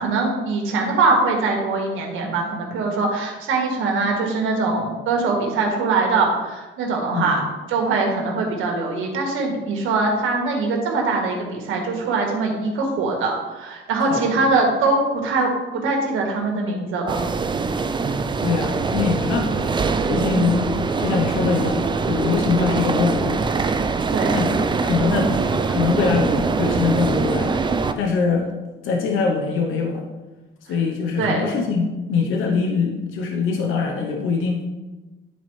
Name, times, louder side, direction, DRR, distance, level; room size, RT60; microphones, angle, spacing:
voice 1, 0.0-7.4 7.7-17.2 20.3-20.6 24.1-24.5 31.2-31.4, right 3 dB, 85° right, 1 dB, 1.6 m, -22 dB
voice 2, 14.1-14.4 18.4-19.7 20.1-20.7 21.0-23.4 24.3-25.4 25.7-27.5 28.0-28.5 28.8-30.0 30.7-34.6, left 5 dB, 85° left, 1 dB, 0.9 m, -23 dB
sound 1, 17.1-27.9, right 4 dB, 25° right, 0.4 m, -23 dB
10.0 x 4.4 x 3.2 m, 1.2 s
cardioid pair, 90°, 20 cm